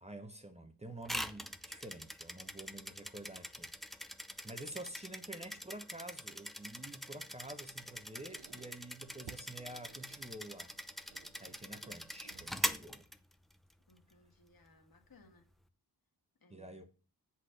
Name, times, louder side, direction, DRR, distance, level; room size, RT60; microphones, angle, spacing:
voice 1, 0.0-3.7 4.4-11.1 11.3-13.1 16.5-16.8, right 1 dB, 15° right, 0.9 m, -49 dB
sound 1, 1.0-13.7, equal, ahead, 0.5 m, -43 dB
Squeak, 7.7-12.9, right 8 dB, 90° right, 0.7 m, -59 dB
voice 2, 13.9-15.5 16.4-16.9, left 3 dB, 60° left, 1.9 m, -64 dB
8.0 x 4.3 x 6.4 m
wide cardioid pair, 95°, 40 cm